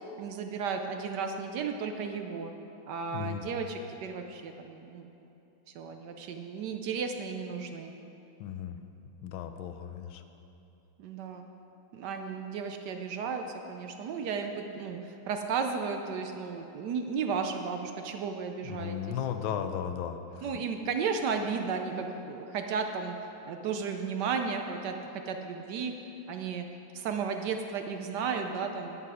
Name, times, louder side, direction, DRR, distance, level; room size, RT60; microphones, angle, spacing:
voice 1, 0.2-2.5 2.9-5.1 5.7-7.9 11.0-11.5 11.9-15.0 15.3-19.0 20.4-23.1 23.5-25.0 25.3-25.9 26.3-26.6 26.9-29.0, right 5 dB, 70° right, 5 dB, 1.1 m, -34 dB
voice 2, 3.1-3.5 8.4-8.8 9.2-10.2 18.6-20.5, left 9 dB, 85° left, 8 dB, 1.4 m, -35 dB
11.0 x 7.9 x 4.9 m, 2.9 s
omnidirectional pair, 2.1 m